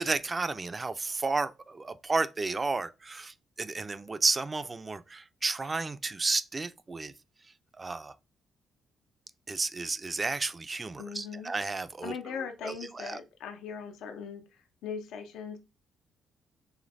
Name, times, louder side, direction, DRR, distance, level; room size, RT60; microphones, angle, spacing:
voice 1, 0.0-7.1 7.8-8.1 9.5-12.1 12.6-13.2, right 3 dB, 25° right, 0.4 m, -32 dB
voice 2, 11.0-11.5 12.0-14.4 14.8-15.6, left 6 dB, 85° left, 0.7 m, -39 dB
5.0 x 3.2 x 2.6 m
cardioid pair, 90°, 0 cm